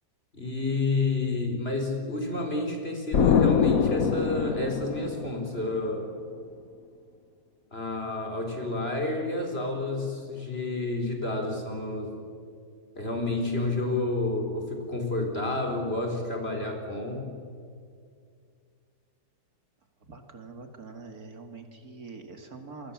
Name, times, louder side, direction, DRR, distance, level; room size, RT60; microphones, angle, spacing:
voice 1, 0.3-6.1 7.7-12.3 13.0-17.3, left 2 dB, 35° left, 3 dB, 4.4 m, -30 dB
Explosion, 3.1-5.8, left 7 dB, 60° left, 1.3 m, -24 dB
voice 2, 20.0-22.9, right 4 dB, 60° right, 5 dB, 2.5 m, -44 dB
27.5 x 24.5 x 7.2 m, 2.3 s
omnidirectional pair, 1.8 m